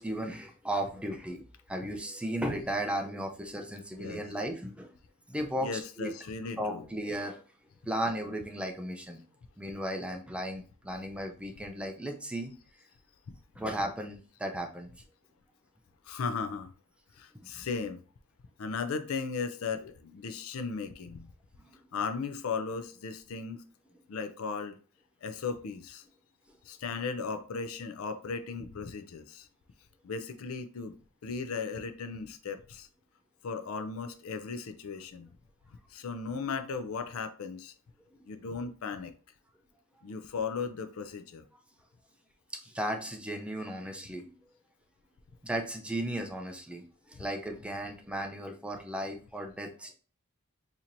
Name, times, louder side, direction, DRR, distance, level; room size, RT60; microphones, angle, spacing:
voice 1, 0.0-4.9 5.3-6.1 6.6-7.4 7.9-9.2 9.6-12.5 13.6-14.9 21.6-21.8 42.6-44.3 45.4-49.9, right 1 dB, 5° right, 0.4 m, -35 dB
voice 2, 3.9-4.3 5.6-6.9 16.0-16.7 17.2-18.0 18.6-21.3 21.9-23.6 24.1-24.8 25.2-26.0 26.7-29.5 30.0-31.0 31.2-32.9 33.4-35.3 35.9-37.7 38.3-39.1 40.0-41.4, left 5 dB, 70° left, 0.4 m, -36 dB
4.3 x 2.8 x 2.6 m
head